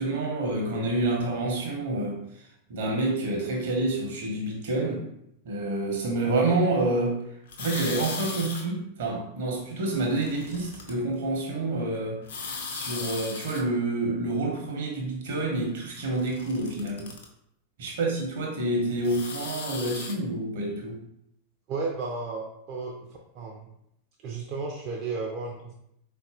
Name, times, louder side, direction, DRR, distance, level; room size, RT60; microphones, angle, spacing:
voice 1, 0.0-2.2 2.7-5.1 5.4-7.2 7.6-12.2 12.7-17.1 17.8-21.0, right 2 dB, 55° right, 0 dB, 0.8 m, -28 dB
sound 1, 7.5-8.6 9.9-10.9 12.3-13.6 15.9-17.2 19.0-20.1, left 4 dB, 60° left, 0.5 m, -37 dB
voice 2, 21.7-23.1 23.3-23.7 24.2-25.7, right 3 dB, 40° right, -1 dB, 0.4 m, -33 dB
4.0 x 2.5 x 2.4 m, 0.77 s
figure-of-eight pair, 90°, 0 cm